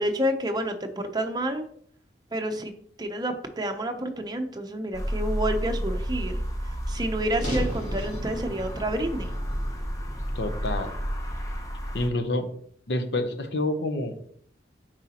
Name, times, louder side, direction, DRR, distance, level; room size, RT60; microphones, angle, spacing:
voice 1, 0.0-1.7 2.3-2.7 3.0-9.4, right 1 dB, 25° right, 5 dB, 0.7 m, -29 dB
sound 1, 4.9-12.1, equal, 20° left, 0.8 m, -31 dB
sound 2, 7.4-11.6, equal, 50° left, 2.2 m, -36 dB
voice 2, 10.3-10.9 11.9-12.5 12.9-14.2, left 2 dB, 70° left, 7 dB, 0.8 m, -28 dB
7.8 x 4.8 x 2.9 m, 0.62 s
head